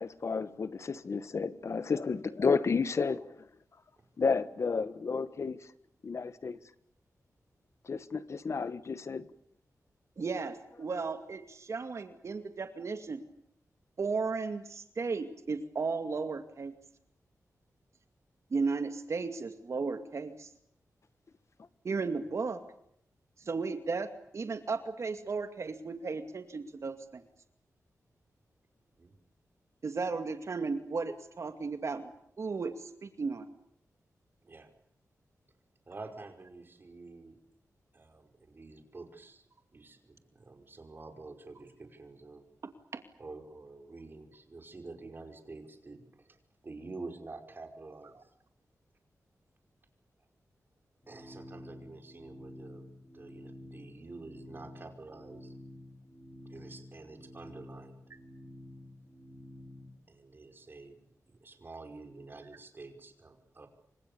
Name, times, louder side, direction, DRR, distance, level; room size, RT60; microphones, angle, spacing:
voice 1, 0.0-3.2 4.2-5.6 6.0-6.6 7.9-9.3, left 5 dB, 55° left, 1.3 m, -31 dB
voice 2, 10.2-13.2 14.0-16.7 18.5-20.5 21.8-22.6 23.4-24.1 24.3-27.2 29.8-32.1 32.4-33.5 42.9-43.0, right 4 dB, 55° right, 2.3 m, -35 dB
voice 3, 35.9-37.4 37.9-39.4 39.7-42.5 43.2-46.4 46.6-48.3 51.1-52.9 53.1-55.5 56.5-58.0 60.1-61.0 61.3-63.7, right 3 dB, 35° right, 5.3 m, -48 dB
sound 1, 51.0-59.9, left 1 dB, 15° left, 5.8 m, -50 dB
28.5 x 25.0 x 7.0 m
wide cardioid pair, 135°, 6 cm